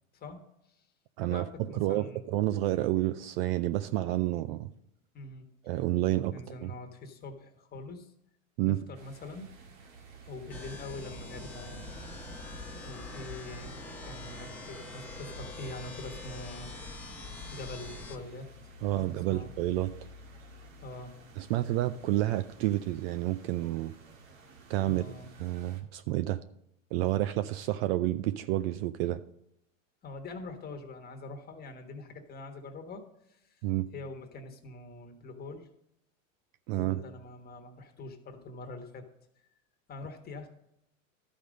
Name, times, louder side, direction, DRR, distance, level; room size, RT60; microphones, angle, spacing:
voice 1, 1.2-2.3 5.1-5.5 6.0-8.1 8.6-9.5 10.2-11.9 12.8-17.1 17.5-18.5 18.9-19.5 20.8-21.2 24.8-25.3 30.0-33.6 33.9-35.7 36.8-39.0 39.9-40.5, left 2 dB, 25° left, 4 dB, 1.4 m, -44 dB
voice 2, 1.7-4.7 5.6-6.3 6.6-6.7 8.6-8.8 18.8-19.9 21.4-23.9 24.7-25.0 25.4-26.4 26.9-29.2 33.6-33.9 36.7-37.0, right 15 dB, 50° right, 13 dB, 0.5 m, -29 dB
sound 1, 8.9-25.8, right 2 dB, 65° right, 2.0 m, -52 dB
sound 2, 10.5-18.2, left 2 dB, 5° left, 1.2 m, -43 dB
12.5 x 5.2 x 5.2 m, 0.79 s
supercardioid pair, 125°, 41 cm